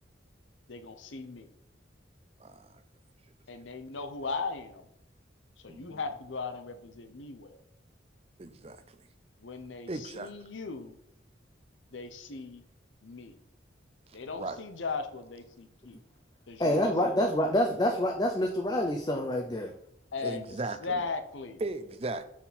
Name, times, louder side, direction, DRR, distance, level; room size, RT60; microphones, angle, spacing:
voice 1, 0.7-1.5 3.5-4.9 5.6-7.6 9.4-11.0 11.9-12.6 13.0-13.3 14.1-16.0 16.5-17.2 20.1-21.6, left 4 dB, 80° left, 0.8 m, -38 dB
voice 2, 2.4-2.8 5.7-6.0 8.4-9.0 9.9-10.3 14.1-14.6 20.2-21.0 21.6-22.2, right 2 dB, 30° right, 0.5 m, -37 dB
voice 3, 16.6-19.7, left 1 dB, 20° left, 0.5 m, -27 dB
6.1 x 5.9 x 4.1 m
head